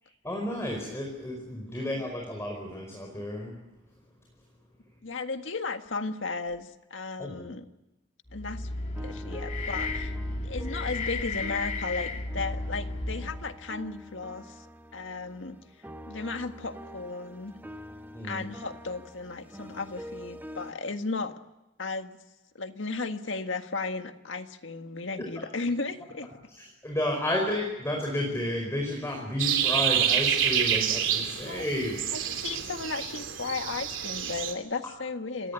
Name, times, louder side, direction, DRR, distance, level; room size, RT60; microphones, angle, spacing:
voice 1, 0.2-3.5 7.2-7.5 18.1-18.5 25.4-25.5 26.5-32.2 35.4-35.5, left 1 dB, 15° left, 1 dB, 5.0 m, -32 dB
voice 2, 1.6-2.0 5.0-7.6 8.3-8.7 9.0-15.6 16.1-17.5 18.2-21.3 21.8-22.2 22.5-26.3 31.4-31.7 32.1-35.5, left 3 dB, 80° left, 7 dB, 1.7 m, -35 dB
sound 1, 8.3-13.6, left 2 dB, 40° left, 2.0 m, -34 dB
sound 2, 8.9-12.0 12.3-20.7, equal, 10° right, 1.5 m, -45 dB
sound 3, 29.4-34.5, right 9 dB, 85° right, 3.1 m, -28 dB
28.5 x 18.0 x 9.9 m, 1.0 s
head